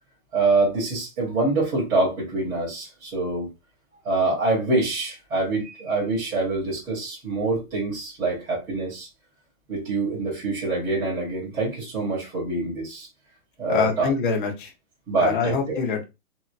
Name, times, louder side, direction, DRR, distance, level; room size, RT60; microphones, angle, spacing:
voice 1, 0.3-3.5 4.0-9.1 9.7-13.1 13.6-14.1 15.1-15.8, right 2 dB, 5° right, 0.8 m, -25 dB
voice 2, 13.7-14.7 15.2-16.0, left 5 dB, 35° left, 0.8 m, -24 dB
2.8 x 2.7 x 2.5 m
hypercardioid pair, 165°, 45 cm